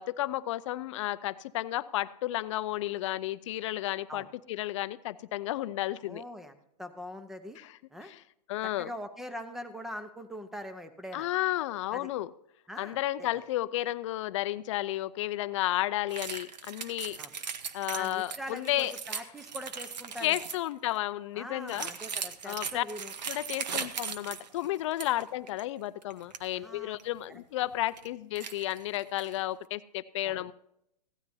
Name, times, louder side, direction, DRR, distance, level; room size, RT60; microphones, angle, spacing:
voice 1, 0.0-6.2 7.6-7.7 8.0-8.2 8.5-8.9 11.1-12.3 12.8-17.2 17.7-18.9 20.2-21.9 22.4-22.8 23.3-30.5, left 15 dB, 45° left, 15 dB, 0.5 m, -32 dB
voice 2, 6.0-7.6 7.9-8.1 8.6-11.3 11.9-12.1 12.7-13.3 17.2-17.3 17.9-20.5 21.3-23.1 23.7-23.9 26.5-27.0 27.3-27.4 30.2-30.4, equal, ahead, 9 dB, 0.8 m, -42 dB
sound 1, 16.1-20.7 21.7-25.2 25.5-25.6 26.0-26.4 27.0-27.1 27.7-28.1 28.4-29.4, right 6 dB, 85° right, 1.1 m, -39 dB
16.5 x 13.0 x 2.8 m, 0.77 s
hypercardioid pair, 145°, 21 cm